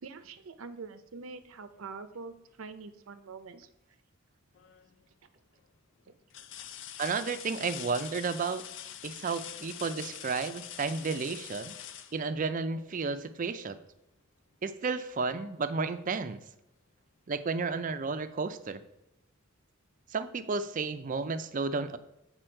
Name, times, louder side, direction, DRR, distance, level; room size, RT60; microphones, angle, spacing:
voice 1, 0.0-3.7 6.1-6.2, right 4 dB, 85° right, 11 dB, 0.6 m, -45 dB
sound 1, 4.5-5.0 5.6-5.7 6.3-13.0 14.8-14.9 15.4-16.4 17.7-17.8, left 10 dB, 65° left, 0.4 m, -45 dB
voice 2, 7.0-8.6 9.0-11.7 12.1-13.8 14.6-16.4 17.3-18.8 20.1-22.0, right 4 dB, 40° right, 11 dB, 0.4 m, -32 dB
7.8 x 4.4 x 4.4 m, 0.88 s
head